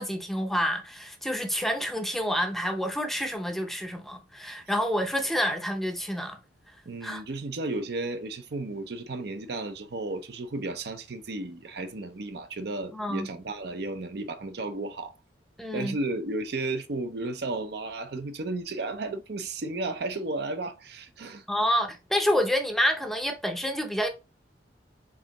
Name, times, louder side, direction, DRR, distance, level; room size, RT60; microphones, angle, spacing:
voice 1, 0.0-6.4 7.0-7.2 12.9-13.3 15.6-16.0 21.5-24.1, equal, ahead, 0.5 m, -28 dB
voice 2, 6.9-15.1 15.7-21.4, right 2 dB, 60° right, 0.6 m, -33 dB
4.7 x 3.6 x 2.9 m
head